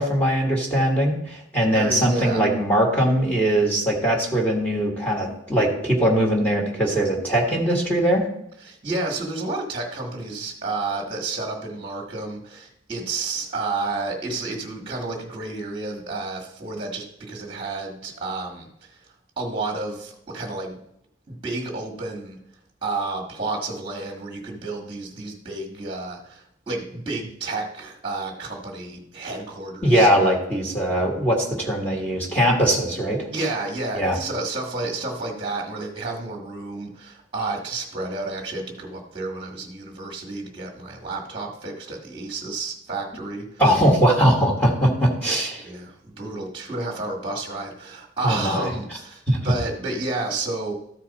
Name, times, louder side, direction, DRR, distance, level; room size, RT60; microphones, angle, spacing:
voice 1, 0.0-8.3 29.8-33.3 33.9-34.2 43.6-45.6 48.2-48.7 49.3-49.4, right 1 dB, 10° left, -1 dB, 1.6 m, -21 dB
voice 2, 1.7-2.5 8.6-19.0 19.4-20.8 21.3-22.4 22.8-30.1 33.3-43.5 45.6-50.7, right 3 dB, 25° right, 0 dB, 1.4 m, -31 dB
13.5 x 4.6 x 4.1 m, 0.76 s
head